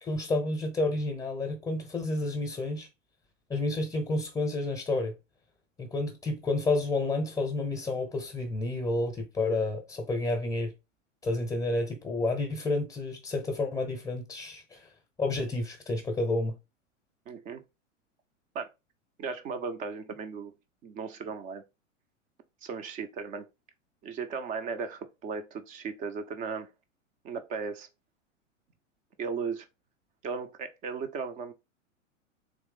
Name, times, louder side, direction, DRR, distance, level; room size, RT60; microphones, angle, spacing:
voice 1, 0.0-2.9 3.5-5.1 5.8-10.7 11.2-14.9 15.2-16.6, left 2 dB, 10° left, 0.8 m, -30 dB
voice 2, 17.3-17.6 18.5-18.7 19.2-20.5 20.8-21.6 22.6-23.5 24.0-26.7 27.2-27.9 29.2-29.7 30.2-31.5, right 5 dB, 20° right, 0.5 m, -36 dB
3.7 x 3.0 x 3.7 m
figure-of-eight pair, 100°, 39 cm